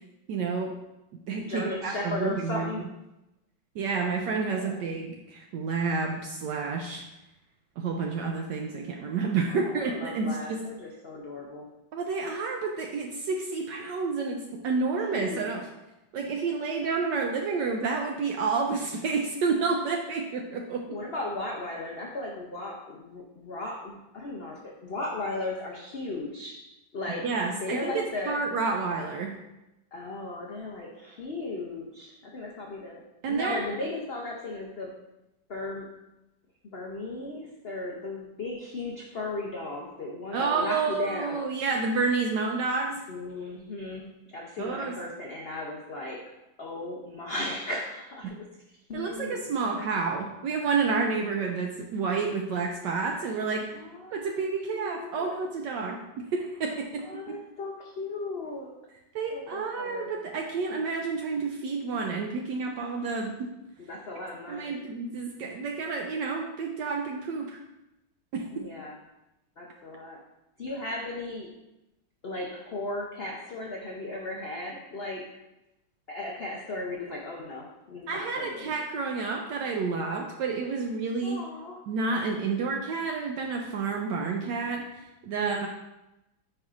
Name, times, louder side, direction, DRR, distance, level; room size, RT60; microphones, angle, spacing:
voice 1, 0.3-0.7 1.3-2.7 3.8-7.0 7.8-10.6 11.9-15.7 16.1-20.9 27.2-29.3 33.2-33.6 40.3-43.0 44.6-45.0 48.2-48.3 48.9-53.7 54.1-57.4 59.1-63.3 64.5-67.6 68.3-68.6 78.1-81.4 81.9-84.9 85.2-85.7, right 4 dB, 75° right, 1 dB, 1.2 m, -30 dB
voice 2, 1.3-2.9 4.5-4.8 9.5-11.7 15.1-15.5 20.9-28.4 29.9-34.9 35.5-35.9 36.7-41.4 43.1-46.2 46.6-48.4 48.9-49.6 53.7-55.4 57.0-58.7 59.3-60.1 63.8-64.7 68.5-69.0 69.6-70.2 70.6-71.5 72.2-75.3 76.1-78.7 81.2-81.8 85.3-85.7, left 2 dB, 75° left, -2 dB, 0.5 m, -36 dB
9.4 x 4.5 x 2.5 m, 0.94 s
omnidirectional pair, 2.1 m